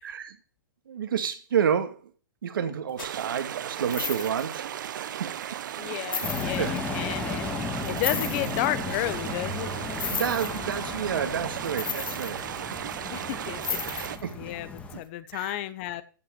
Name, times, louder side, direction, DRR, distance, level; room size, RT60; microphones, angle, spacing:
voice 1, 0.0-0.4 0.9-1.9 2.4-4.7 4.9-5.3 6.2-6.3 6.6-6.8 8.1-8.3 10.1-12.4 14.0-14.5 15.3-15.5, right 8 dB, 85° right, 7 dB, 2.3 m, -29 dB
sound 1, 3.0-3.2 3.8-4.5 5.3-5.4 6.0-6.8 7.8-8.7 10.0-10.8 11.6-12.9 13.6-14.3 14.8-14.9, left 7 dB, 90° left, 1.9 m, -33 dB
sound 2, 3.0-14.2, right 10 dB, 65° right, 1.0 m, -36 dB
voice 2, 5.8-9.7 13.1-16.0, left 14 dB, 40° left, 15 dB, 1.0 m, -33 dB
sound 3, 6.2-15.0, left 4 dB, 10° left, 1.6 m, -35 dB
15.0 x 5.9 x 6.6 m, 0.38 s
hypercardioid pair, 155°, 11 cm